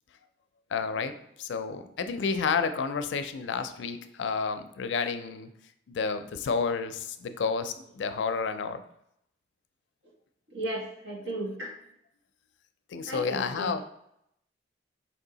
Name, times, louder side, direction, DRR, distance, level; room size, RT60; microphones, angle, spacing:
voice 1, 0.7-1.1 1.4-5.5 5.9-8.8 12.9-13.8, left 5 dB, 85° left, 9 dB, 0.4 m, -30 dB
voice 2, 10.5-11.7 13.1-13.7, right 1 dB, 80° right, -3 dB, 1.4 m, -35 dB
4.4 x 2.7 x 3.9 m, 0.76 s
head